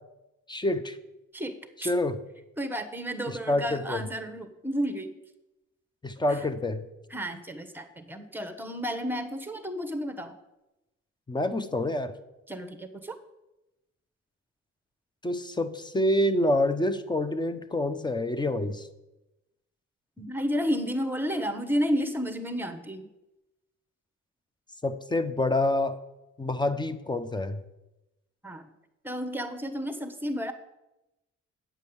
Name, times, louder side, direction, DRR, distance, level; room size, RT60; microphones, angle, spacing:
voice 1, 0.5-1.0 1.8-2.2 3.3-4.0 6.0-6.8 11.3-12.1 15.2-18.9 24.8-26.0 26.4-27.6, left 1 dB, 15° left, 11 dB, 0.8 m, -27 dB
voice 2, 1.3-1.9 2.6-5.1 7.1-10.3 12.5-13.2 20.2-23.1 28.4-28.6 29.0-30.5, equal, 5° right, 7 dB, 1.2 m, -32 dB
8.9 x 5.3 x 7.9 m, 0.96 s
cardioid pair, 90°, 30 cm